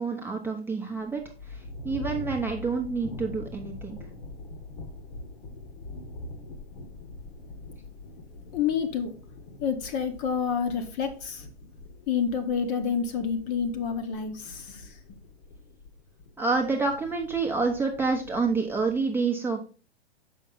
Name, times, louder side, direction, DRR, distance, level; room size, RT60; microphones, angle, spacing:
voice 1, 0.0-4.0 16.4-19.6, right 4 dB, 5° right, 0 dB, 0.8 m, -28 dB
sound 1, 1.0-19.1, left 2 dB, 50° left, 1.3 m, -44 dB
voice 2, 8.5-9.2 9.6-11.5 12.1-15.2, left 6 dB, 35° left, 7 dB, 1.0 m, -29 dB
6.4 x 5.5 x 3.7 m, 0.36 s
hypercardioid pair, 115°, 31 cm